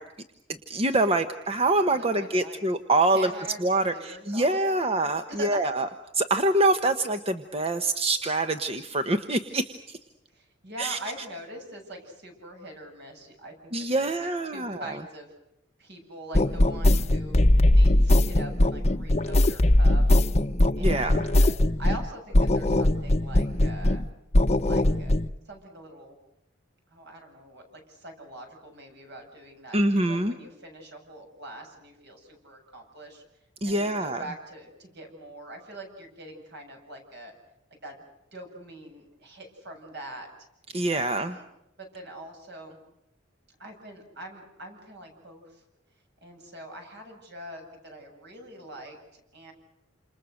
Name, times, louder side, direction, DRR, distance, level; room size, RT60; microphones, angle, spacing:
voice 1, 0.7-3.3 3.6-5.9 6.2-10.0 10.8-11.0 13.7-15.0 20.8-21.2 29.7-30.3 33.6-34.2 40.7-41.3, right 2 dB, 30° right, 8 dB, 1.2 m, -25 dB
voice 2, 1.9-2.6 3.1-4.9 5.4-5.7 10.3-15.3 15.8-17.3 17.7-20.0 20.8-21.5 21.8-24.0 24.6-25.2 25.4-26.2 26.9-33.2 33.6-37.3 37.8-38.0 38.3-40.3 40.9-41.4 41.8-42.8 43.6-45.6 46.2-49.5, right 1 dB, 60° right, 3 dB, 7.7 m, -43 dB
sound 1, 16.3-22.1 22.3-24.1 24.3-25.3, left 1 dB, 35° left, 0.9 m, -21 dB
29.0 x 27.5 x 6.6 m, 0.86 s
head